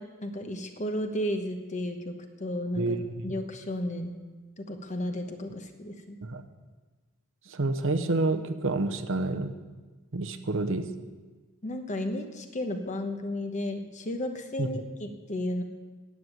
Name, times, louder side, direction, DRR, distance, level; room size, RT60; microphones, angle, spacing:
voice 1, 0.0-2.1 2.4-3.0 3.2-4.1 4.6-6.2 11.6-15.6, left 1 dB, 35° left, 6 dB, 1.1 m, -33 dB
voice 2, 7.5-9.5 10.1-10.9 14.6-14.7, right 2 dB, 65° right, 8 dB, 0.9 m, -28 dB
9.4 x 7.9 x 9.1 m, 1.3 s
head